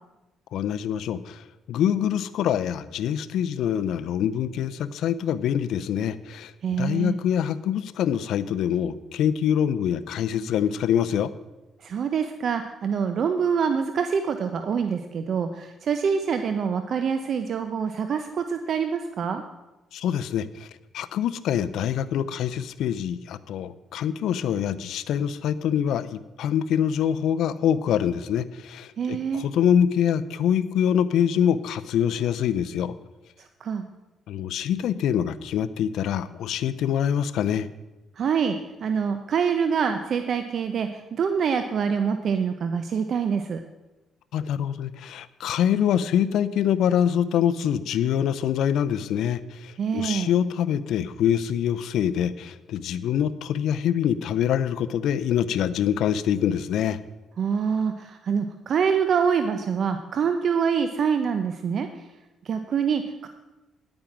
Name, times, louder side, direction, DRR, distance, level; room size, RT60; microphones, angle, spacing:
voice 1, 0.5-1.4 1.7-6.5 6.8-11.3 19.9-20.7 20.9-32.9 34.3-37.7 44.3-57.0, left 9 dB, 80° left, 14 dB, 0.5 m, -25 dB
voice 2, 6.6-7.2 11.8-19.4 29.0-29.4 33.4-33.8 38.2-43.6 49.8-50.3 57.4-61.9 62.4-63.3, right 6 dB, 60° right, 8 dB, 0.7 m, -25 dB
10.5 x 8.8 x 6.0 m, 1.1 s
cardioid pair, 90°, 0 cm